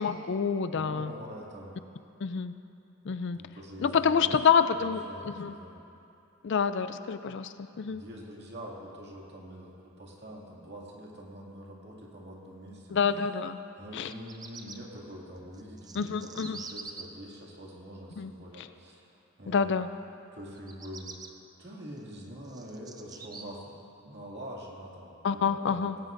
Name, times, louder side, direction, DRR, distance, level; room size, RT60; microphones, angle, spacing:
voice 1, 0.0-1.1 2.2-2.5 3.0-3.4 3.8-5.5 6.4-8.0 12.9-13.6 13.9-14.1 15.9-16.6 18.2-18.3 18.6-18.7 19.5-19.9 25.2-26.0, left 6 dB, 55° left, 11 dB, 0.4 m, -27 dB
voice 2, 0.7-1.7 3.3-4.4 4.8-5.8 7.7-13.0 13.8-19.1 19.4-19.7 20.3-21.1 21.6-23.7 24.0-25.2 25.5-25.9, equal, 50° right, -3 dB, 2.3 m, -45 dB
Bird vocalization bird call bird song, 13.9-14.8 15.5-17.0 20.6-21.3 22.0-23.4, right 4 dB, 15° right, 0.5 m, -45 dB
18.0 x 17.0 x 2.6 m, 2.7 s
head